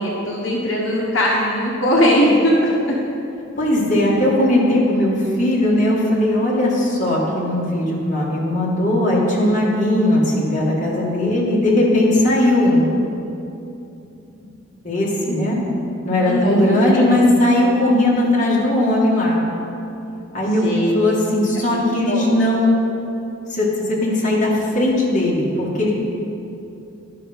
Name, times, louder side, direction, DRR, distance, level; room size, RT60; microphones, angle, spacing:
voice 1, 0.0-2.9 16.2-16.6 16.9-17.0 20.6-21.0 21.7-22.3, equal, 75° left, -4 dB, 1.3 m, -19 dB
voice 2, 3.6-12.9 14.8-15.6 16.0-19.4 20.3-22.7 23.5-25.9, left 1 dB, 35° left, -6 dB, 2.1 m, -18 dB
11.5 x 5.8 x 5.3 m, 2.8 s
head